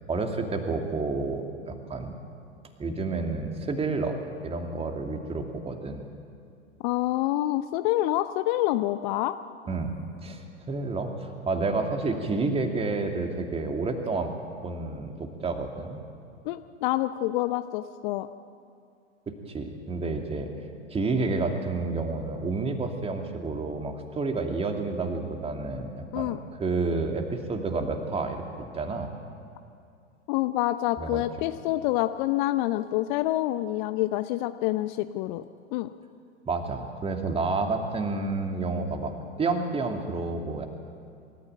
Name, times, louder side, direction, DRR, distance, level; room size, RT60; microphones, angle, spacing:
voice 1, 0.0-2.2 2.8-6.0 9.7-14.3 14.6-16.0 19.5-20.5 20.9-29.1 31.0-31.2 36.5-39.1 39.4-40.7, right 3 dB, 15° right, 4 dB, 2.4 m, -30 dB
voice 2, 6.8-9.4 16.4-18.3 26.1-26.4 30.3-35.4 35.7-35.9, left 15 dB, 40° left, 11 dB, 0.8 m, -27 dB
26.0 x 13.5 x 8.9 m, 2.5 s
figure-of-eight pair, 100°, 36 cm